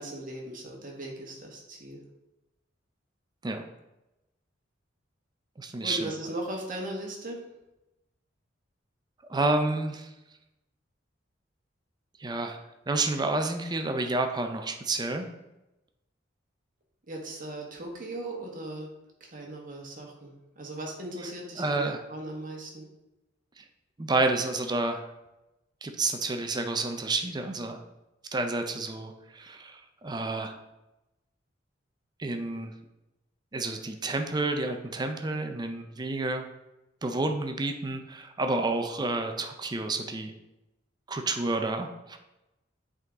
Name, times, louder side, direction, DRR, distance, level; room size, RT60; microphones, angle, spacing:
voice 1, 0.0-2.0 5.8-7.4 17.1-18.9 19.2-22.8, right 1 dB, 45° right, -1 dB, 1.5 m, -38 dB
voice 2, 5.6-6.1 9.3-10.1 12.2-12.6 12.9-15.3 21.6-22.0 23.6-23.7 24.0-25.0 25.8-27.8 28.3-30.5 32.2-32.7 33.5-36.5 37.0-40.3 41.1-42.2, right 2 dB, 20° right, 6 dB, 0.5 m, -30 dB
8.1 x 3.9 x 3.6 m, 0.95 s
head